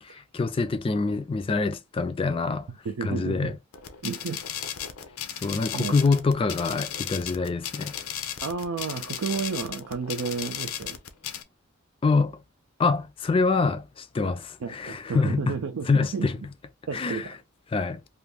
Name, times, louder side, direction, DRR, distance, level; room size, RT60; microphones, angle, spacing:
voice 1, 0.0-2.7 3.0-3.6 5.4-8.0 12.0-12.4 12.8-15.4 15.9-16.4 16.9-17.3 17.7-18.0, left 4 dB, 25° left, 0.3 m, -25 dB
voice 2, 2.8-3.6 4.0-4.4 5.7-6.0 8.4-11.0 14.6-16.3 16.9-17.4, right 5 dB, 80° right, 0.4 m, -32 dB
sound 1, 3.7-11.4, left 9 dB, 80° left, 0.5 m, -35 dB
2.6 x 2.4 x 3.3 m
head